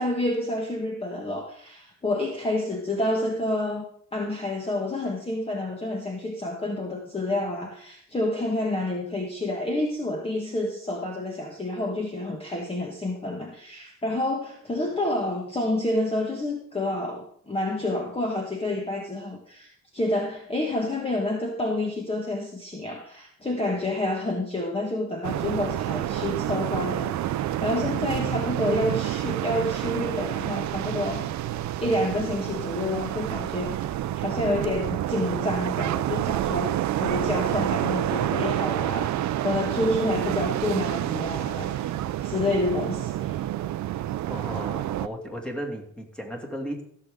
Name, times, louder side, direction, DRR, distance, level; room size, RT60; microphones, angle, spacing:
voice 1, 0.0-3.8 4.1-31.3 31.8-33.9 34.1-41.9 42.2-43.4, left 1 dB, 20° left, 1 dB, 1.5 m, -29 dB
sound 1, 25.2-45.1, right 13 dB, 65° right, 0.6 m, -28 dB
voice 2, 44.3-46.8, equal, 5° left, 1 dB, 2.6 m, -35 dB
15.5 x 6.8 x 3.8 m, 0.63 s
cardioid pair, 90°, 30 cm